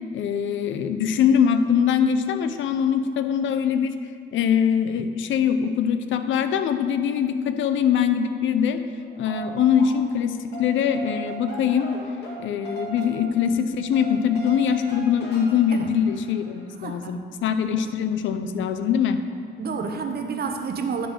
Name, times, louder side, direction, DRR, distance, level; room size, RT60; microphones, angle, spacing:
voice 1, 0.1-3.9 4.3-8.8 9.2-11.9 12.4-19.2, left 8 dB, 75° left, 9 dB, 0.6 m, -22 dB
sound 1, 9.0-10.2 10.5-16.7, right 4 dB, 60° left, 1.9 m, -39 dB
voice 2, 16.8-17.2 19.6-21.1, right 5 dB, 50° right, 5 dB, 0.9 m, -29 dB
9.7 x 3.9 x 6.3 m, 2.4 s
cardioid pair, 90°, 20 cm